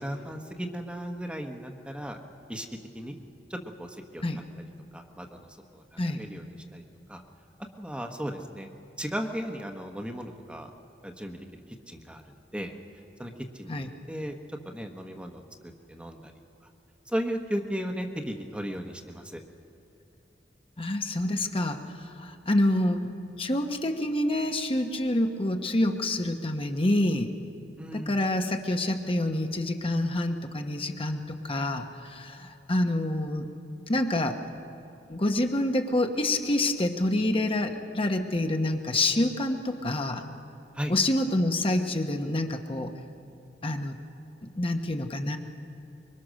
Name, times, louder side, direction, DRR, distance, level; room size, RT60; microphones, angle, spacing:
voice 1, 0.0-2.2 2.5-2.7 2.9-3.2 3.5-4.2 4.9-5.5 5.7-6.5 6.7-6.8 7.1-7.2 7.8-8.7 9.0-10.7 11.0-11.4 11.9-12.2 12.5-12.7 13.2-14.3 14.6-16.3 17.1-19.4 27.8-28.2 40.7-40.9, equal, 5° right, 3 dB, 1.2 m, -35 dB
voice 2, 20.8-21.8 22.2-23.1 23.4-27.3 27.9-33.5 33.9-34.4 35.1-40.2 40.9-42.9 43.6-44.0 44.5-45.4, left 1 dB, 30° left, 4 dB, 1.1 m, -27 dB
25.0 x 22.5 x 6.4 m, 2.6 s
head